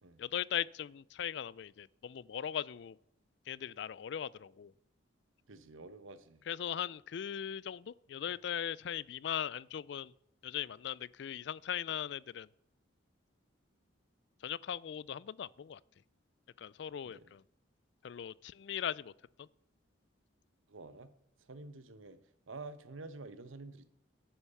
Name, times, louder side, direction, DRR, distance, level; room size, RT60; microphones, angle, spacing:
voice 1, 0.2-3.0 3.5-4.7 6.5-10.1 10.4-12.5 14.4-15.8 16.6-17.4 18.0-19.1 19.4-19.5, left 9 dB, 60° left, 0.3 m, -39 dB
voice 2, 5.5-6.4 17.0-17.3 20.7-21.1 21.5-22.2 22.5-23.9, right 3 dB, 85° right, 1.0 m, -49 dB
9.3 x 8.6 x 5.6 m
head